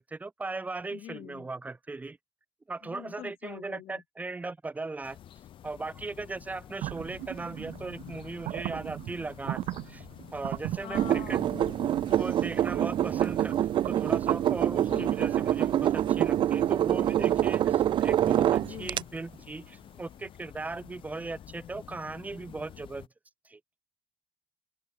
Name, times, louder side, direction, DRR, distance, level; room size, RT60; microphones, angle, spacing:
voice 1, 0.0-2.2 2.7-5.2 5.6-10.1 10.3-11.4 12.2-23.1 23.4-23.6, right 3 dB, 15° right, 0.7 m, -38 dB
voice 2, 0.9-1.5 2.8-4.0 10.8-12.1 14.9-15.3 18.6-19.1, left 14 dB, 85° left, 2.2 m, -44 dB
sound 1, 5.0-23.1, left 11 dB, 65° left, 2.2 m, -50 dB
sound 2, 6.8-19.7, right 15 dB, 90° right, 0.7 m, -40 dB
sound 3, 10.9-19.0, right 11 dB, 60° right, 0.4 m, -26 dB
cardioid pair, 115°, 9 cm